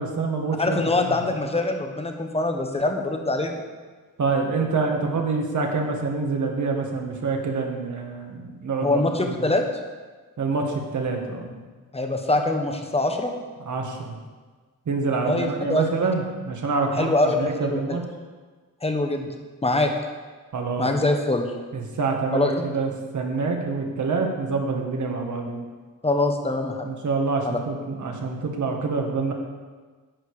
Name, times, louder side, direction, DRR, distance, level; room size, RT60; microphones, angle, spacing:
voice 1, 0.0-0.8 1.1-1.2 4.2-9.0 9.3-9.5 10.4-11.6 13.7-14.2 14.9-18.0 20.5-20.9 21.7-25.6 26.8-29.3, right 4 dB, 60° right, 2 dB, 1.8 m, -26 dB
voice 2, 0.6-3.6 8.8-9.6 11.9-13.3 15.3-15.9 16.9-17.8 18.8-19.9 20.8-21.5 22.3-22.6 26.0-26.9 27.4-27.6, left 2 dB, 20° left, 4 dB, 1.1 m, -24 dB
11.0 x 8.9 x 4.9 m, 1.4 s
wide cardioid pair, 150°, 34 cm